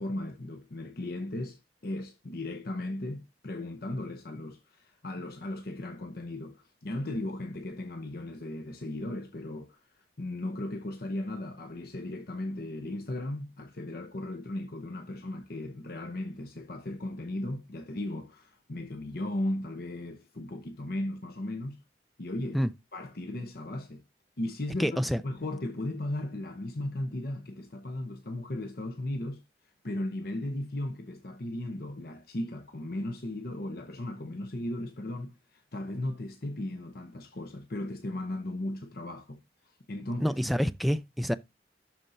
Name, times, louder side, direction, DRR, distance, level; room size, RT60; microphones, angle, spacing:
voice 1, 0.0-9.8 10.2-21.8 22.2-22.6 22.9-24.0 24.4-29.4 29.8-40.4, left 1 dB, 60° left, 0.8 m, -36 dB
voice 2, 24.8-25.2 40.2-41.3, equal, ahead, 0.4 m, -27 dB
12.0 x 4.4 x 2.6 m
head